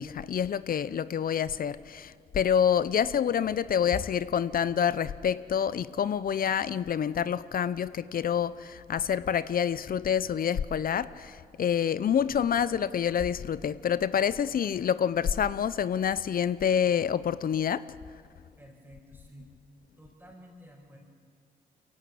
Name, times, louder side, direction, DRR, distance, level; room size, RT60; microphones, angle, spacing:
voice 1, 0.0-17.8, left 8 dB, 60° left, 17 dB, 0.7 m, -27 dB
voice 2, 18.6-19.5 20.0-21.0, equal, 10° right, -5 dB, 5.2 m, -51 dB
23.5 x 16.5 x 8.5 m, 2.3 s
cardioid pair, 60°, 17 cm